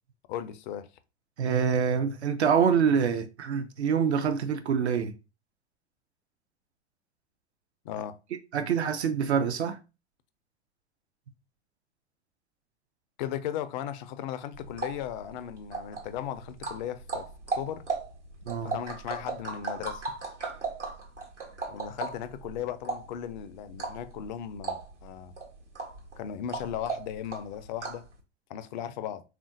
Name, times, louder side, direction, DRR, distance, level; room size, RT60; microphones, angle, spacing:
voice 1, 0.3-0.9 7.8-8.2 13.2-17.3 17.5-17.8 18.6-20.0 21.7-25.3 26.2-28.0 28.5-29.2, left 10 dB, 45° left, 0.4 m, -36 dB
voice 2, 1.4-5.1 8.5-9.8 18.5-18.7, right 7 dB, 70° right, 0.5 m, -25 dB
sound 1, 14.5-28.1, right 4 dB, 85° right, 1.1 m, -37 dB
3.5 x 2.5 x 2.5 m
figure-of-eight pair, 85°, 34 cm